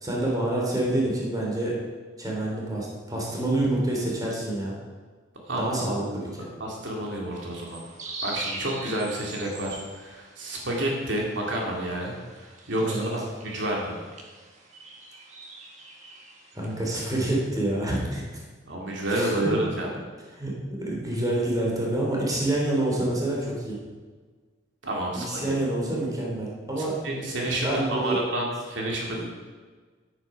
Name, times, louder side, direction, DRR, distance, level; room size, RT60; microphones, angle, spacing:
voice 1, 0.0-1.7 2.2-4.8 5.6-6.4 12.8-13.1 16.5-18.2 19.1-19.5 20.3-20.5 20.8-23.8 25.1-26.9 27.6-28.2 28.8-29.2, right 1 dB, 20° right, -3 dB, 3.0 m, -27 dB
voice 2, 6.6-7.8 8.2-13.0 13.4-14.0 18.7-19.9 24.8-25.5 27.0-29.2, right 1 dB, 75° right, -2 dB, 2.5 m, -29 dB
sound 1, 7.3-17.0, right 3 dB, 40° right, 1.7 m, -43 dB
11.0 x 9.1 x 5.8 m, 1.4 s
head